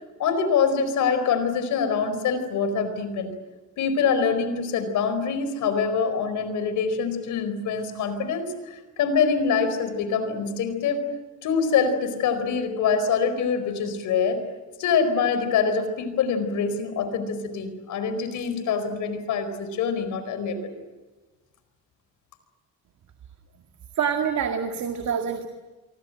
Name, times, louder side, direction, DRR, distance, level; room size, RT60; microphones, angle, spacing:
voice 1, 0.2-3.3 3.8-11.0 11.4-14.4 14.8-20.7, left 6 dB, 85° left, 10 dB, 4.6 m, -25 dB
voice 2, 24.0-25.5, right 7 dB, 70° right, 5 dB, 2.2 m, -26 dB
28.0 x 24.0 x 7.9 m, 1.2 s
cardioid pair, 90°, 30 cm